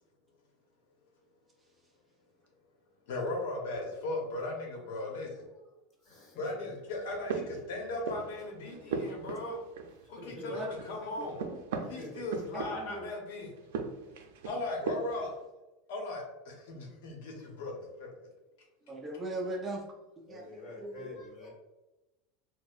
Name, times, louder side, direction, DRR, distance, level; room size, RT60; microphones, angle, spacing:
voice 1, 3.1-5.4 6.4-9.6 10.1-11.4 11.9-13.5 14.4-15.3 15.9-18.1, left 2 dB, 80° left, 0 dB, 0.9 m, -37 dB
voice 2, 6.0-6.5 10.0-10.5 11.8-12.2 20.3-21.5, left 2 dB, 35° left, -3 dB, 1.2 m, -47 dB
sound 1, 7.0-8.4 8.7-10.3 10.5-13.1 13.6-15.3, right 5 dB, 85° right, 0.4 m, -38 dB
voice 3, 8.7-9.3 10.5-10.7 11.2-11.6 12.5-13.1 18.8-19.8 20.3-21.1, right 2 dB, 15° right, 0 dB, 0.4 m, -40 dB
4.3 x 2.0 x 2.4 m, 1.0 s
supercardioid pair, 155°, 0 cm